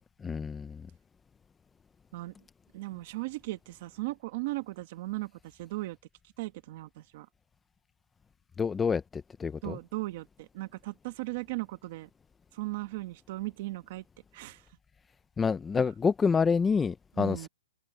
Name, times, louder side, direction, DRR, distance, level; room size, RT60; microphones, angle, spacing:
voice 1, 0.2-0.9 8.6-9.8 15.4-17.5, left 5 dB, 5° left, 0.4 m, -28 dB
voice 2, 2.7-5.3 5.6-6.0 6.4-7.3 9.6-12.1 12.5-14.0 14.3-14.6 15.8-15.9 17.2-17.5, right 19 dB, 25° right, 1.3 m, -37 dB
open air
hypercardioid pair, 180°, 0 cm